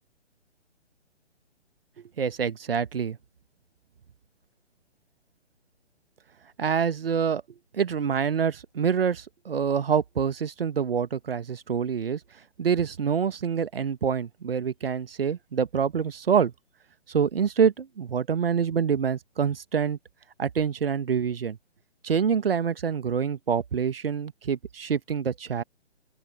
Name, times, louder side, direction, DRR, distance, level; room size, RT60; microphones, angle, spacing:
voice 1, 2.2-3.2 6.6-7.4 7.7-12.2 12.6-16.5 17.1-20.0 20.4-21.6 22.0-25.6, right 7 dB, 55° right, 1.3 m, -26 dB
open air
figure-of-eight pair, 135°, 35 cm